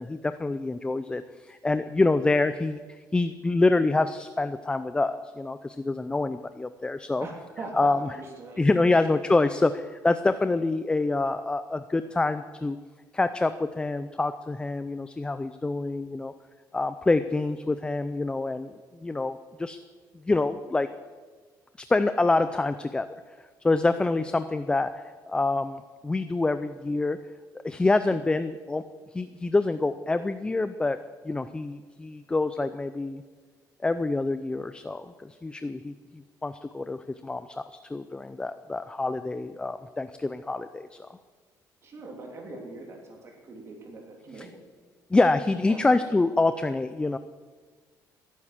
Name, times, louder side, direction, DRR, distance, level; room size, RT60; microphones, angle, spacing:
voice 1, 0.0-7.3 7.8-8.0 8.6-12.8 13.1-16.3 16.7-19.8 20.2-20.9 21.8-23.1 23.6-27.2 27.6-28.8 29.1-31.0 31.2-33.2 33.8-41.1 44.4-44.5 45.1-47.2, left 3 dB, 15° left, 11 dB, 0.5 m, -26 dB
voice 2, 7.2-8.7 41.8-44.5 45.6-45.8, right 2 dB, 40° right, 0 dB, 3.1 m, -41 dB
16.0 x 9.3 x 7.4 m, 1.5 s
cardioid pair, 135°, 7 cm